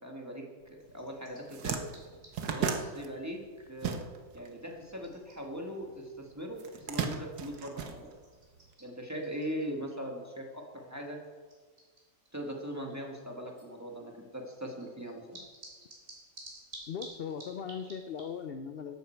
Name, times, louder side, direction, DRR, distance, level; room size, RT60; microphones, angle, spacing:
voice 1, 0.0-1.9 2.4-4.0 4.3-8.1 8.8-11.2 12.3-15.4, equal, 10° right, 0 dB, 1.6 m, -40 dB
sound 1, 0.8-18.5, right 1 dB, 50° right, 3.6 m, -56 dB
sound 2, 0.9-1.0 1.3-4.5 4.7-5.9 6.6-8.6, right 7 dB, 90° right, 1.5 m, -35 dB
voice 2, 16.9-19.0, left 7 dB, 60° left, 8 dB, 0.6 m, -39 dB
13.0 x 10.5 x 4.5 m, 1.5 s
omnidirectional pair, 1.6 m